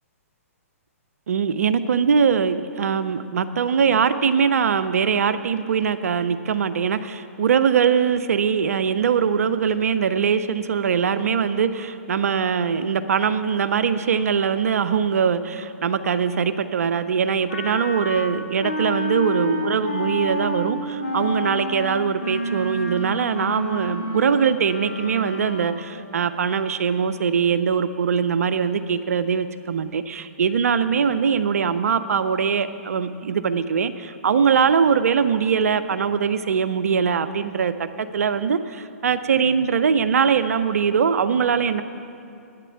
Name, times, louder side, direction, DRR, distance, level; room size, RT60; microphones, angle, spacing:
voice 1, 1.3-41.8, right 6 dB, 75° right, 12 dB, 0.4 m, -22 dB
Wind instrument woodwind instrument, 17.5-26.1, left 1 dB, 70° left, 1.6 m, -30 dB
9.3 x 6.7 x 8.5 m, 2.6 s
hypercardioid pair, 130°, 8 cm